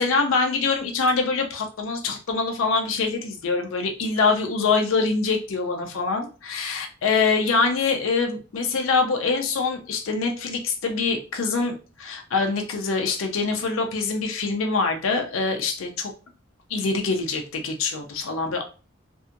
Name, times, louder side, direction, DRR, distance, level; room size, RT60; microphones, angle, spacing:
voice 1, 0.0-16.1 16.7-18.6, left 4 dB, 85° left, 3 dB, 0.5 m, -24 dB
2.6 x 2.5 x 2.5 m, 0.35 s
head